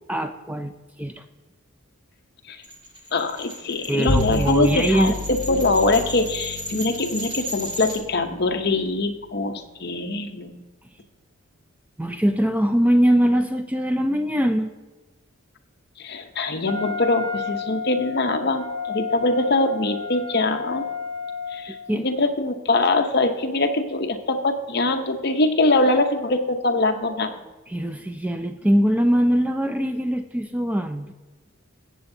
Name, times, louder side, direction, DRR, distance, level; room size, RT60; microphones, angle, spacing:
voice 1, 0.1-0.7 1.0-1.2 3.9-5.1 12.0-14.7 21.9-22.1 27.7-31.1, equal, 5° right, 7 dB, 0.3 m, -22 dB
sound 1, 2.6-8.0, equal, 20° right, 1.9 m, -35 dB
voice 2, 3.1-10.6 16.0-20.8 21.5-27.3, left 2 dB, 50° left, 5 dB, 0.8 m, -23 dB
Bowed string instrument, 4.1-9.7, left 2 dB, 80° left, 0.9 m, -32 dB
Wind instrument woodwind instrument, 16.7-21.9, left 5 dB, 55° right, 1.2 m, -31 dB
13.5 x 8.0 x 2.7 m, 1.2 s
head